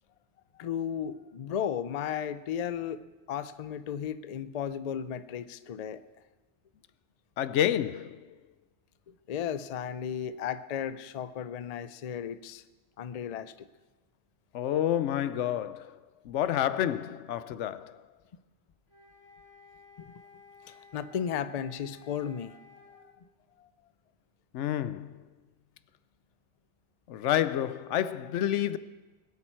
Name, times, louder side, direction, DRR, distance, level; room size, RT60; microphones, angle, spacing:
voice 1, 0.5-3.0 3.3-6.0 9.1-12.6 13.0-13.7 20.0-20.1 20.6-22.6 22.9-23.0 23.6-23.7, left 8 dB, 50° left, 0.5 m, -35 dB
voice 2, 7.4-8.2 14.5-15.9 16.3-17.9 24.5-25.1 27.1-28.8, left 11 dB, 85° left, 0.9 m, -29 dB
sound 1, 18.9-23.1, left 4 dB, 20° left, 1.8 m, -55 dB
20.5 x 8.6 x 4.5 m
omnidirectional pair, 1.2 m